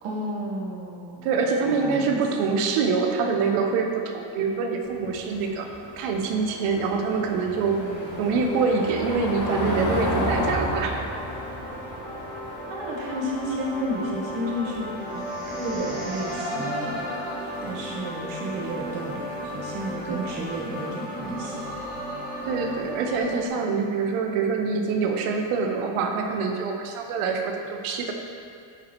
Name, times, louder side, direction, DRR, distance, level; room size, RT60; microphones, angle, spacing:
voice 1, 0.0-1.3 1.6-2.2 7.8-8.4 12.7-17.0 17.6-21.6, equal, 60° right, -3 dB, 1.4 m, -32 dB
voice 2, 1.2-5.7 6.0-7.8 8.2-11.1 20.1-20.2 22.4-28.1, right 4 dB, 80° right, 3 dB, 0.9 m, -25 dB
sound 1, 4.3-23.5, equal, ahead, 1.2 m, -36 dB
Car passing by / Engine, 4.8-15.5, left 1 dB, 35° left, 1.1 m, -32 dB
8.2 x 3.0 x 4.2 m, 2.4 s
cardioid pair, 150°, 50 cm